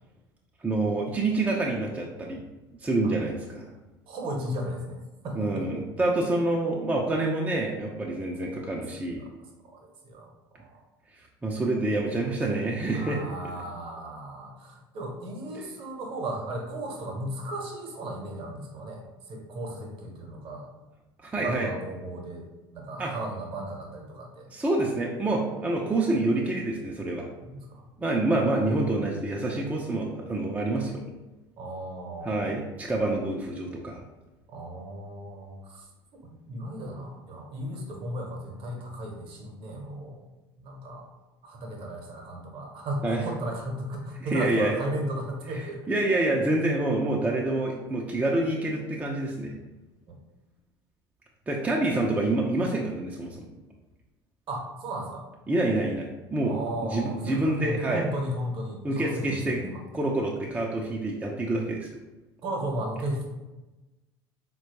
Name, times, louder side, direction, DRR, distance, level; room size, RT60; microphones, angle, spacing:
voice 1, 0.6-2.4 2.8-3.7 5.4-9.2 11.4-13.2 21.2-21.7 23.0-23.1 24.5-27.3 28.0-31.0 32.2-34.0 43.0-43.2 44.2-44.8 45.5-45.6 45.9-49.6 51.5-53.5 55.5-58.0 58.8-59.6 59.9-61.9, right 2 dB, 10° right, -1 dB, 0.4 m, -27 dB
voice 2, 4.1-5.7 9.7-10.3 10.6-10.8 12.9-19.0 19.3-20.7 21.3-22.4 22.7-24.5 27.5-27.8 31.6-32.6 34.5-35.8 36.1-40.2 40.6-41.1 41.4-45.9 50.1-50.2 54.5-55.2 56.4-59.8 62.4-63.2, right 1 dB, 45° right, 1 dB, 0.8 m, -35 dB
4.2 x 2.2 x 2.9 m, 1.1 s
figure-of-eight pair, 65°, 13 cm